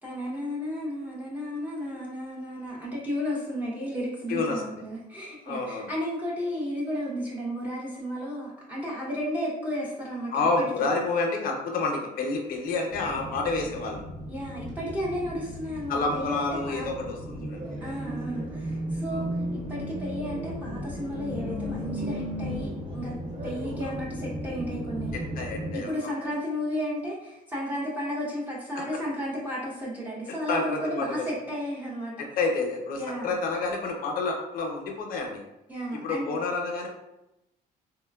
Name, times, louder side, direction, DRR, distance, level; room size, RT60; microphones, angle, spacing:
voice 1, 0.0-10.7 14.3-16.9 17.8-23.2 23.4-25.2 25.7-32.1 32.9-33.4 35.7-36.3, equal, 10° right, -7 dB, 0.7 m, -33 dB
voice 2, 4.3-4.8 5.5-5.9 10.3-14.0 15.9-18.1 19.1-19.2 25.1-26.1 28.8-28.9 30.3-31.3 32.2-35.4 36.0-36.9, left 3 dB, 60° left, 2 dB, 0.6 m, -29 dB
sound 1, 12.9-25.8, equal, 50° right, 0.8 m, -35 dB
3.3 x 2.1 x 2.2 m, 0.90 s
cardioid pair, 110°, 17 cm